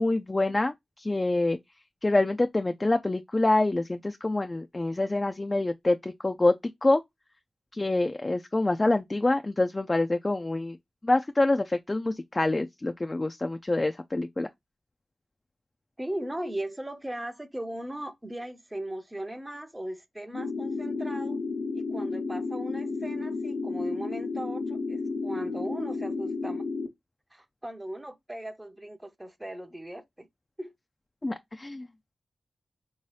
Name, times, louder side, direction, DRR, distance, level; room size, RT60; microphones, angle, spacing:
voice 1, 0.0-1.6 2.0-6.6 6.8-7.0 7.7-10.8 11.0-14.5 31.2-31.9, left 2 dB, 30° left, 0.4 m, -26 dB
voice 2, 16.0-21.4 21.7-26.6 27.3-30.3 30.6-30.7, right 1 dB, 15° right, 0.6 m, -38 dB
sound 1, 20.3-26.9, left 3 dB, 85° left, 0.8 m, -32 dB
3.5 x 2.7 x 3.1 m
cardioid pair, 50°, 0 cm